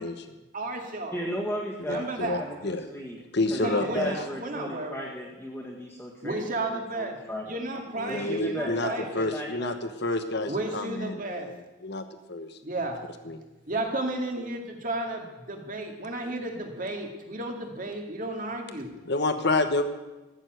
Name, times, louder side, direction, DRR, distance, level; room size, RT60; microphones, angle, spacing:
voice 1, 0.0-0.3 1.9-2.8 3.3-4.2 8.0-12.6 13.2-13.4 19.0-19.8, left 2 dB, 55° left, 8 dB, 1.2 m, -29 dB
voice 2, 0.5-1.2 1.8-2.4 3.6-5.0 6.2-7.2 7.4-9.3 10.5-11.5 12.6-13.0 13.7-18.9, right 2 dB, 40° right, 3 dB, 2.2 m, -33 dB
voice 3, 1.1-3.2 3.5-7.6 8.1-9.7, equal, 10° left, -5 dB, 1.9 m, -35 dB
14.5 x 7.2 x 9.3 m, 1.1 s
head